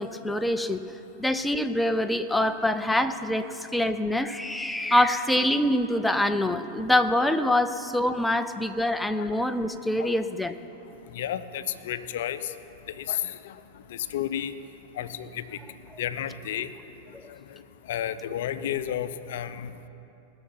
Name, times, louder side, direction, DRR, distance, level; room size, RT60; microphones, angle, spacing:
voice 1, 0.0-10.6 17.1-17.2, left 1 dB, 5° left, 9 dB, 0.6 m, -25 dB
voice 2, 11.2-12.4 13.0-13.5 14.1-14.5 15.0-15.4 16.0-16.7 17.9-19.7, left 10 dB, 70° left, 12 dB, 0.6 m, -31 dB
20.0 x 6.8 x 5.7 m, 2.9 s
hypercardioid pair, 100°, 0 cm